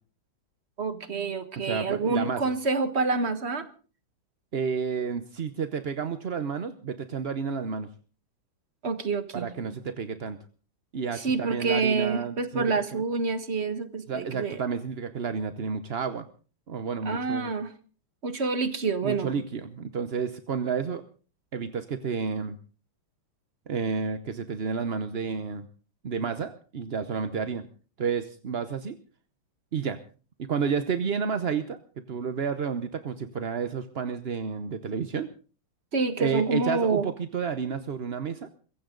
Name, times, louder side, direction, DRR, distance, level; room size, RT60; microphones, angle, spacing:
voice 1, 0.8-3.7 8.8-9.8 11.1-14.6 17.0-17.7 18.2-19.3 35.9-37.1, right 4 dB, 35° right, 10 dB, 1.6 m, -27 dB
voice 2, 1.6-2.4 4.5-7.9 9.3-10.4 10.9-13.0 14.1-16.3 16.7-17.5 19.0-21.0 21.5-22.6 23.7-25.7 26.0-27.7 28.0-28.9 29.7-30.0 30.5-35.3 36.2-38.5, right 6 dB, 50° right, 10 dB, 0.7 m, -31 dB
23.0 x 15.5 x 3.9 m, 0.39 s
omnidirectional pair, 2.2 m